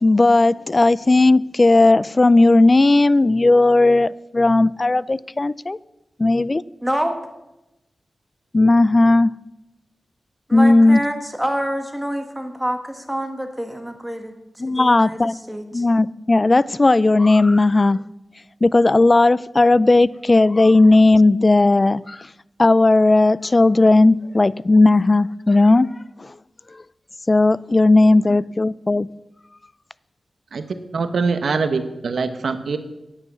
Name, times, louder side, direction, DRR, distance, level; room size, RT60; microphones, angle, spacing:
voice 1, 0.0-5.8 6.2-6.6 8.5-9.4 10.5-11.0 14.6-15.3 15.7-18.0 18.6-22.3 22.6-26.3 27.3-29.1, left 2 dB, 35° left, 0.3 m, -15 dB
voice 2, 6.8-7.1 10.5-14.4 14.7-15.8 28.0-28.2, equal, 5° right, 1.7 m, -27 dB
voice 3, 30.9-32.8, right 4 dB, 75° right, 1.0 m, -23 dB
9.7 x 8.3 x 6.9 m
cardioid pair, 70°, 0 cm